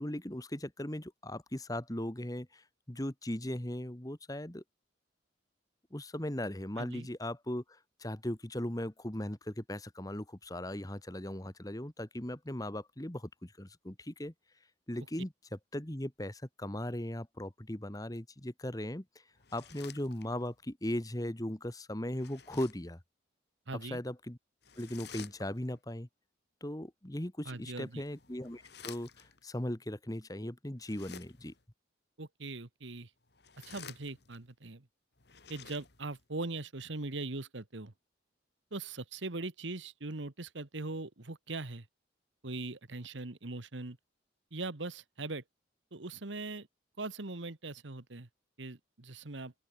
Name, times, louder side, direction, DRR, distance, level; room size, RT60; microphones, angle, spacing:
voice 1, 0.0-4.6 5.9-14.3 14.9-15.3 15.7-19.0 19.5-23.0 23.8-24.4 24.8-26.1 26.6-29.1 29.4-31.5, left 1 dB, 20° left, 1.5 m, -38 dB
voice 2, 6.8-7.1 23.7-24.0 27.4-28.0 32.2-33.1 33.6-34.9 35.5-37.9 38.7-41.9 42.4-44.0 44.5-45.4 45.9-46.7 47.0-48.3 48.6-49.5, right 3 dB, 75° right, 1.5 m, -40 dB
sound 1, 19.3-20.6 22.1-22.9 24.6-25.8 27.6-29.4 30.8-31.6 33.2-34.5 35.2-36.2, left 7 dB, 55° left, 2.0 m, -52 dB
open air
head